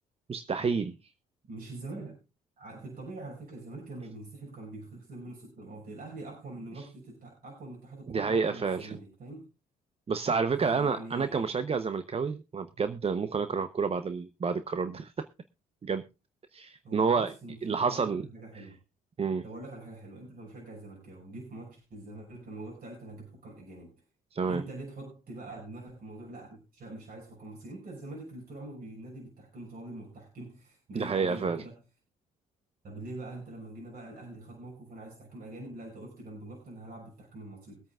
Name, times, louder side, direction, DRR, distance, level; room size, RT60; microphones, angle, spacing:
voice 1, 0.3-0.9 8.1-9.0 10.1-15.3 15.8-16.0 16.5-17.3 17.6-18.3 19.2-19.4 24.3-24.6 30.9-31.6, right 5 dB, 30° right, 12 dB, 0.8 m, -29 dB
voice 2, 1.5-2.1 2.6-9.4 10.5-11.4 16.8-18.8 19.4-23.9 24.4-31.8 32.8-37.8, right 2 dB, 55° right, -2 dB, 5.9 m, -44 dB
23.5 x 8.7 x 2.4 m, 0.28 s
hypercardioid pair, 55°, 19 cm